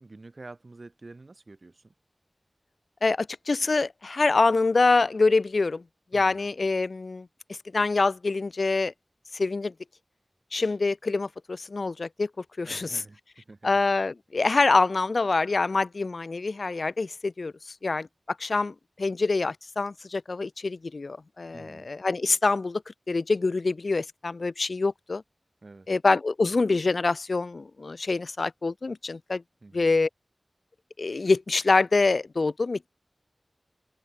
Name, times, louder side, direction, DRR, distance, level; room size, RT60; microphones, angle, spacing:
voice 1, 0.0-1.9 6.1-6.5 12.6-13.7 21.5-21.9 25.6-25.9 29.6-30.0, right 3 dB, 60° right, 2.2 m, -48 dB
voice 2, 3.0-5.8 6.1-7.3 7.7-8.9 9.3-9.7 10.5-12.3 12.6-13.0 13.6-18.1 18.4-25.2 25.9-29.4 29.7-30.1 31.0-32.9, left 3 dB, 80° left, 0.5 m, -25 dB
wide cardioid pair, 65°, 0 cm